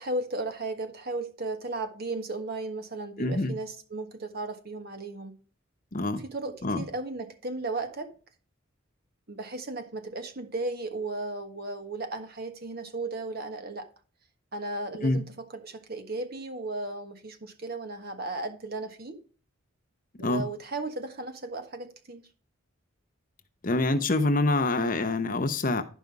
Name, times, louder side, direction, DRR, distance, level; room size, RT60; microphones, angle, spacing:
voice 1, 0.0-5.3 6.2-8.1 9.3-13.9 14.5-19.2 20.2-22.3, right 2 dB, 45° right, 1.5 m, -35 dB
voice 2, 3.2-3.5 5.9-6.2 6.6-6.8 15.0-15.2 20.2-20.4 23.6-25.8, left 2 dB, 40° left, 0.9 m, -26 dB
11.5 x 5.4 x 4.7 m
head